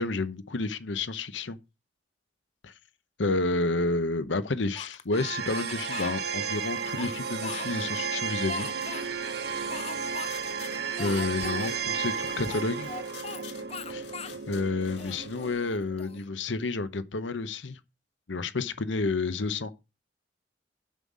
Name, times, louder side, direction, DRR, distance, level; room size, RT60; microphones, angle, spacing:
voice 1, 0.0-1.6 2.6-2.7 3.2-8.7 11.0-12.9 13.9-14.1 14.5-17.8 18.3-19.7, left 3 dB, 85° left, 0.9 m, -30 dB
Speech, 4.7-6.1 6.7-8.0 8.5-9.1 9.7-10.3 10.6-10.7 11.0-11.7 12.4-13.4 13.7-14.4 14.9-16.2, left 6 dB, 35° left, 0.6 m, -40 dB
sound 1, 5.1-16.2, right 6 dB, 60° right, 0.9 m, -34 dB
sound 2, 8.8-15.5, left 3 dB, 70° left, 2.5 m, -48 dB
7.4 x 5.6 x 6.2 m
head